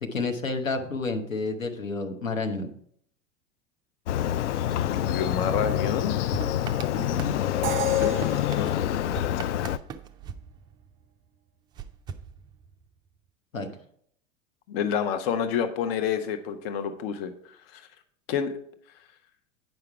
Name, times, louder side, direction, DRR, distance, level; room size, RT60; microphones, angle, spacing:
voice 1, 0.0-2.7 6.9-7.4 13.5-13.7, left 3 dB, 85° left, 5 dB, 1.1 m, -30 dB
Motorcycle, 4.1-9.8, left 11 dB, 65° left, 0.5 m, -26 dB
voice 2, 4.8-6.1 7.9-8.9 14.7-17.3 17.7-17.9 18.3-18.6, left 7 dB, 50° left, 9 dB, 0.9 m, -29 dB
sound 1, 6.3-11.2 11.7-13.0, right 6 dB, 10° right, 0.3 m, -40 dB
Crash cymbal, 7.6-9.5, right 12 dB, 30° right, 1.0 m, -36 dB
9.4 x 5.8 x 4.6 m, 0.66 s
figure-of-eight pair, 85°, 39 cm